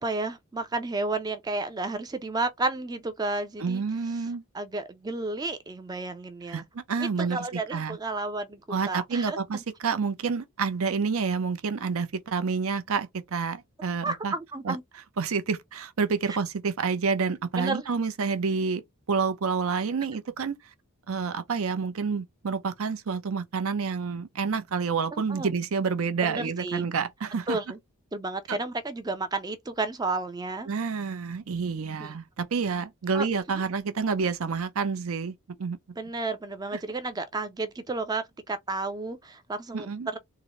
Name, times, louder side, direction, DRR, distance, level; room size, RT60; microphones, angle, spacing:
voice 1, 0.0-3.8 4.1-4.3 4.5-6.7 7.0-9.6 14.0-14.8 16.3-16.4 17.6-17.8 25.1-25.5 26.2-26.9 27.5-27.8 28.1-30.7 32.0-32.1 33.1-33.6 36.0-40.2, right 3 dB, 20° right, 0.4 m, -32 dB
voice 2, 3.6-4.4 6.5-8.0 8.7-14.3 14.6-14.8 15.2-18.8 19.1-20.6 21.1-27.6 28.5-28.6 30.7-35.3 35.6-35.8 39.7-40.1, right 5 dB, 70° right, 0.6 m, -28 dB
3.7 x 2.0 x 2.9 m
head